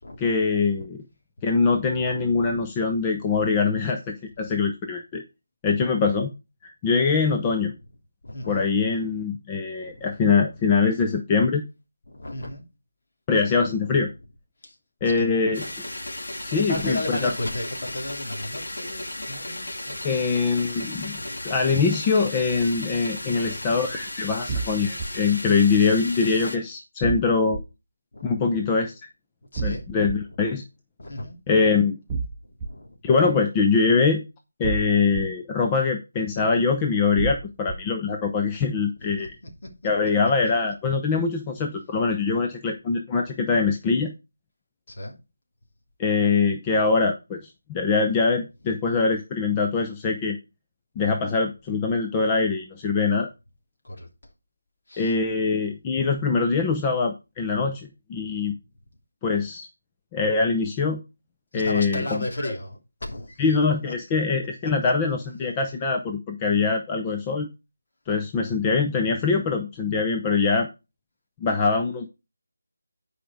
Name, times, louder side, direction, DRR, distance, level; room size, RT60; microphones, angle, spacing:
voice 1, 0.2-1.0 1.4-5.2 5.6-6.3 6.6-7.7 8.5-11.6 13.3-14.1 15.0-15.6 16.4-17.3 20.0-21.2 21.4-27.6 28.2-29.0 29.6-30.6 31.5-32.0 33.0-34.2 34.6-39.3 39.8-44.1 46.0-50.4 51.0-53.3 55.0-58.5 59.2-59.7 60.1-61.0 61.5-62.5 63.4-67.5 68.1-70.7 71.4-72.1, left 4 dB, 15° left, 0.7 m, -23 dB
voice 2, 8.2-8.7 9.8-10.2 12.1-12.6 13.8-14.0 14.6-15.4 16.5-20.2 21.1-21.4 23.2-23.7 28.1-28.7 29.5-29.8 31.0-31.4 32.6-33.0 39.2-39.7 44.9-45.2 53.8-54.1 54.9-55.1 61.5-63.4, left 1 dB, 50° left, 3.0 m, -35 dB
sound 1, 15.5-26.6, left 1 dB, 65° left, 2.5 m, -35 dB
sound 2, 24.5-25.1 27.0-27.6 29.6-30.1 32.1-32.7 34.6-35.2 37.2-37.7, right 4 dB, 15° right, 1.0 m, -29 dB
10.0 x 5.0 x 4.9 m
figure-of-eight pair, 170°, 0 cm